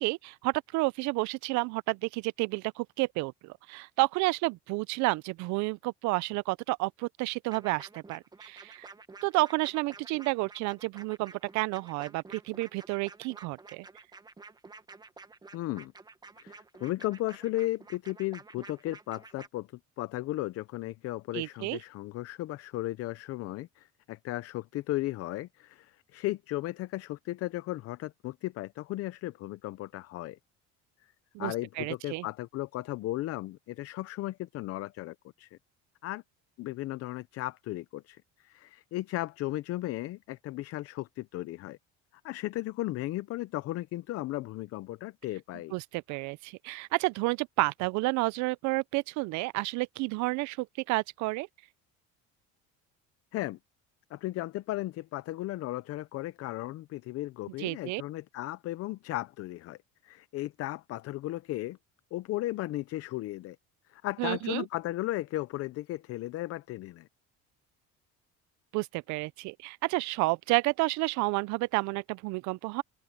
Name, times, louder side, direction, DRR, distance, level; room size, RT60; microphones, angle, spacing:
voice 1, 0.0-8.9 9.2-13.9 21.3-21.8 31.3-32.3 45.7-51.5 57.6-58.0 64.2-64.7 68.7-72.8, right 23 dB, 70° right, 0.5 m, -30 dB
sound 1, 7.5-19.5, right 4 dB, 15° right, 1.2 m, -50 dB
voice 2, 15.5-15.9 16.4-19.7 20.0-30.4 31.4-35.6 36.0-36.2 36.6-41.8 42.2-45.7 53.3-53.6 54.1-59.8 60.0-61.8 62.1-63.6 63.9-67.1, left 16 dB, 50° left, 0.6 m, -35 dB
open air
cardioid pair, 150°, 30 cm